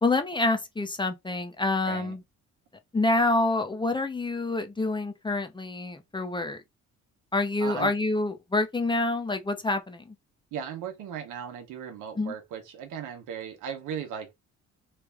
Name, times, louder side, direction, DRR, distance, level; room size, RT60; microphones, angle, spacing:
voice 1, 0.0-2.2 2.9-6.6 7.3-10.1 12.2-12.3, left 2 dB, 15° left, 0.6 m, -27 dB
voice 2, 7.6-7.9 10.5-14.3, right 8 dB, 85° right, 1.0 m, -37 dB
3.3 x 2.5 x 3.3 m
cardioid pair, 90°, 30 cm